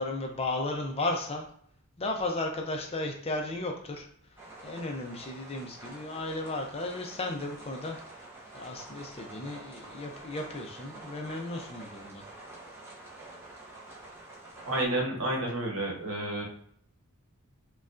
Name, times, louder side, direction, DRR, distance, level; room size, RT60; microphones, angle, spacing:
voice 1, 0.0-1.4 2.0-4.1 4.6-8.3 8.5-12.2, left 2 dB, 25° left, 2 dB, 0.5 m, -34 dB
sound 1, 4.4-14.8, right 2 dB, 10° right, 0.8 m, -48 dB
voice 2, 14.6-16.4, right 1 dB, 65° right, -1 dB, 1.0 m, -30 dB
5.0 x 2.3 x 2.5 m, 0.64 s
head